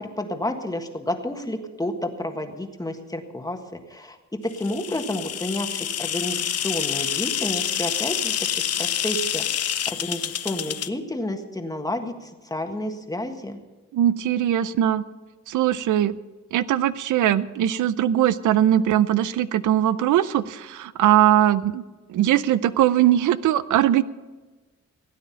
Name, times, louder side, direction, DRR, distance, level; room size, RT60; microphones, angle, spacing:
voice 1, 0.0-3.6 3.9-4.2 4.6-9.4 9.9-13.6, left 1 dB, 10° left, 5 dB, 1.5 m, -30 dB
sound 1, 4.5-10.9, left 9 dB, 55° left, 0.7 m, -27 dB
voice 2, 13.9-15.0 15.5-16.2 16.5-21.8 22.1-24.0, right 11 dB, 90° right, 15 dB, 0.6 m, -20 dB
16.5 x 9.4 x 5.7 m, 1.3 s
cardioid pair, 105°, 29 cm